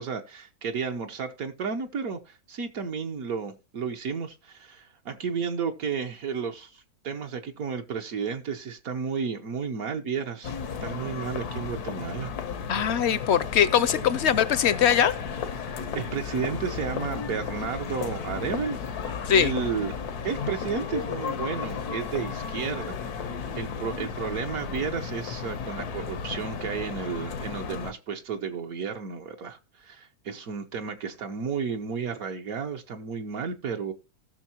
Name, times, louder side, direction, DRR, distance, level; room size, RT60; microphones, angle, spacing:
voice 1, 0.0-10.5 10.8-12.3 15.9-18.8 19.3-19.9 20.2-23.0 23.2-33.9, right 6 dB, 70° right, 1.4 m, -32 dB
sound 1, 10.4-27.9, left 6 dB, 90° left, 1.5 m, -34 dB
voice 2, 12.7-15.1 19.3-19.5, left 9 dB, 60° left, 0.7 m, -22 dB
18.0 x 6.3 x 2.9 m
omnidirectional pair, 1.6 m